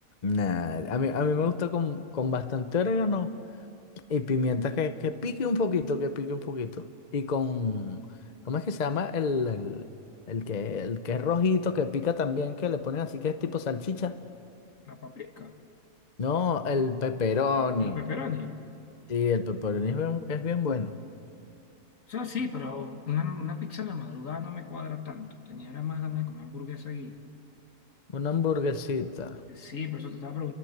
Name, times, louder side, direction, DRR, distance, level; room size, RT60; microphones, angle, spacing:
voice 1, 0.2-3.3 4.1-6.8 7.1-8.0 8.5-9.8 10.3-14.2 16.2-18.0 19.1-21.0 28.1-29.4, left 5 dB, 35° left, 10 dB, 0.9 m, -28 dB
voice 2, 14.9-15.5 17.8-18.5 22.1-27.2 29.5-30.5, left 7 dB, 75° left, 6 dB, 2.0 m, -35 dB
29.5 x 23.5 x 8.1 m, 2.5 s
omnidirectional pair, 1.4 m